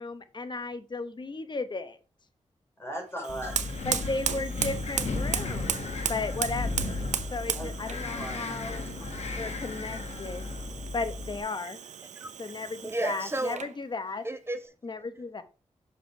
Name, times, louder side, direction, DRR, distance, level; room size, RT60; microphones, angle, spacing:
voice 1, 0.0-2.0 3.8-7.1 7.3-8.9 9.4-10.5 10.9-11.8 12.4-14.3 14.8-15.4, left 3 dB, 40° left, 1.0 m, -35 dB
voice 2, 2.8-3.7 7.5-8.5 8.8-9.6, right 1 dB, 20° left, 3.5 m, -40 dB
Fire, 3.2-13.8, right 8 dB, 90° right, 0.6 m, -36 dB
Wind, 3.3-11.4, left 3 dB, 65° left, 1.4 m, -35 dB
voice 3, 12.8-13.6 14.2-14.7, right 2 dB, 20° right, 1.1 m, -32 dB
6.4 x 5.1 x 4.5 m
cardioid pair, 65°, 12 cm